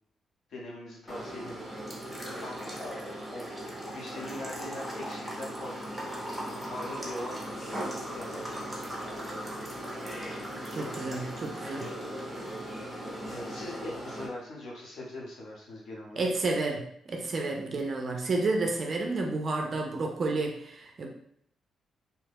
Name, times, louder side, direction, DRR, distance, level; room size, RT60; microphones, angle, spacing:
voice 1, 0.5-1.6 2.4-3.5 3.9-6.0 6.7-7.8 8.1-8.9 13.3-16.2, left 1 dB, 55° left, -3 dB, 0.9 m, -42 dB
sound 1, 1.1-14.3, equal, 5° left, 0.7 m, -38 dB
voice 2, 10.7-11.8 16.2-16.8 17.1-21.1, right 3 dB, 35° right, 2 dB, 0.4 m, -30 dB
2.8 x 2.2 x 3.4 m, 0.68 s
cardioid pair, 155°, 0 cm